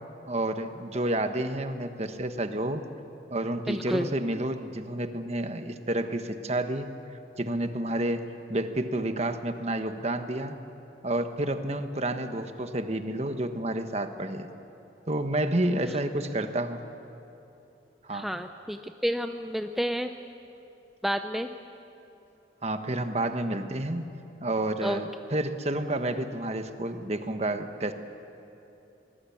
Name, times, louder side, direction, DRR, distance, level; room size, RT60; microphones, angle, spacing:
voice 1, 0.3-2.8 3.3-6.9 7.4-10.6 11.0-14.5 15.1-16.8 18.1-18.3 22.6-24.1 24.4-27.9, right 1 dB, 40° right, 8 dB, 1.3 m, -30 dB
voice 2, 3.7-4.1 18.1-20.1 21.0-21.5 24.8-25.0, equal, ahead, 6 dB, 0.6 m, -30 dB
24.0 x 21.0 x 8.7 m, 2.8 s
head